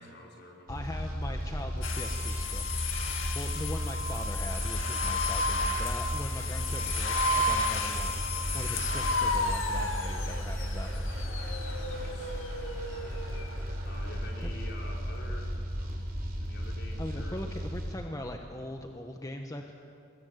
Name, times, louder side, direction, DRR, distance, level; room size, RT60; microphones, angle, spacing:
voice 1, 0.0-0.9 11.6-12.4 13.8-17.4, left 1 dB, 55° left, 0 dB, 4.8 m, -48 dB
voice 2, 0.7-2.7 3.3-11.1 17.0-19.7, left 1 dB, 15° left, 3 dB, 1.2 m, -40 dB
sound 1, 0.7-18.0, equal, 45° right, 4.1 m, -35 dB
sound 2, 1.8-13.5, left 2 dB, 80° left, 2.3 m, -33 dB
26.5 x 21.0 x 8.1 m, 2.5 s
head